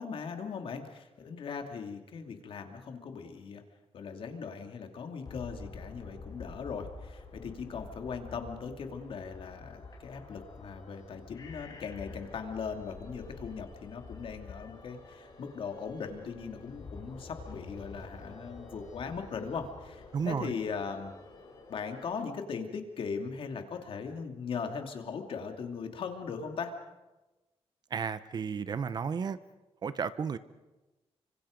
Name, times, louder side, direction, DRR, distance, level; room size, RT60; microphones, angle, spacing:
voice 1, 0.0-3.6 3.9-21.1 21.7-26.7, left 5 dB, 55° left, 5 dB, 2.6 m, -39 dB
sound 1, 5.3-22.2, left 3 dB, 40° left, 6.3 m, -48 dB
voice 2, 20.1-20.5 27.9-29.4 29.8-30.4, right 6 dB, 40° right, 14 dB, 0.8 m, -33 dB
30.0 x 25.0 x 5.2 m, 1.1 s
wide cardioid pair, 175°, 11 cm